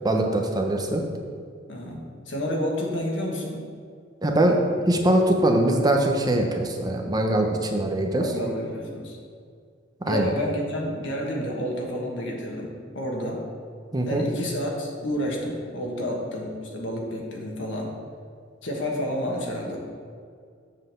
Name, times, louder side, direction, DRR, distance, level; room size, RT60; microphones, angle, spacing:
voice 1, 0.0-1.0 4.2-4.6 4.9-8.3 10.0-10.3 13.9-14.2, right 1 dB, 20° right, 2 dB, 0.6 m, -22 dB
voice 2, 1.7-3.6 8.1-9.2 10.0-13.4 14.1-17.9 18.6-19.8, equal, 70° left, -1 dB, 1.4 m, -30 dB
7.4 x 3.9 x 6.7 m, 2.2 s
head